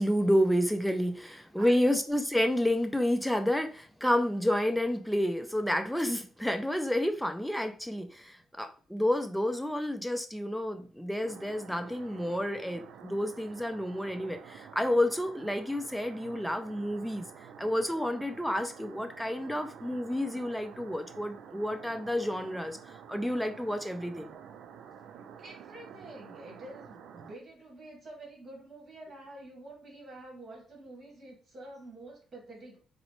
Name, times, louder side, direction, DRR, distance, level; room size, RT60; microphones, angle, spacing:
voice 1, 0.0-17.3 17.6-24.3, left 1 dB, ahead, 6 dB, 0.5 m, -30 dB
voice 2, 1.2-2.0 25.4-32.8, right 2 dB, 50° right, -1 dB, 1.5 m, -48 dB
sound 1, 11.2-27.3, right 7 dB, 80° right, 0.3 m, -50 dB
4.0 x 2.0 x 3.0 m, 0.40 s
cardioid pair, 90°, 0 cm